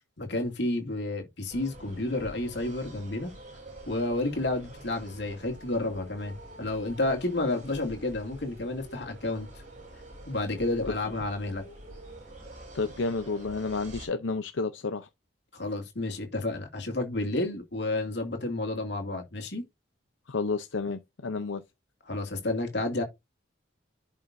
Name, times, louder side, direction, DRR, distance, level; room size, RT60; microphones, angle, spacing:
voice 1, 0.2-3.3 3.9-9.5 10.3-11.6 15.5-19.6 22.1-23.0, left 2 dB, 65° left, 2.4 m, -31 dB
sound 1, 1.5-14.1, right 1 dB, 40° right, 3.6 m, -47 dB
voice 2, 12.7-15.1 20.3-21.6, left 3 dB, 85° left, 0.7 m, -31 dB
11.0 x 5.6 x 2.7 m
head